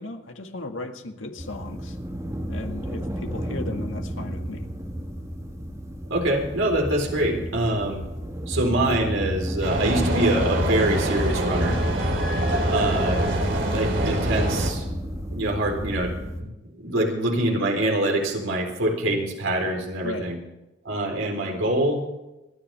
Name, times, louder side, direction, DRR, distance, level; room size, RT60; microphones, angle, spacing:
voice 1, 0.0-2.0 2.5-4.7 20.0-20.3, left 2 dB, 80° left, 5 dB, 1.8 m, -36 dB
sound 1, 1.4-16.4, equal, 15° right, 1.8 m, -31 dB
voice 2, 6.1-8.0 8.5-11.8 12.7-13.3 13.7-14.8 15.3-16.5 16.7-20.4 20.8-22.0, right 1 dB, 80° right, 0 dB, 3.9 m, -25 dB
sound 2, 9.6-14.7, right 1 dB, 65° right, 3.1 m, -25 dB
27.5 x 10.5 x 3.4 m, 0.99 s
head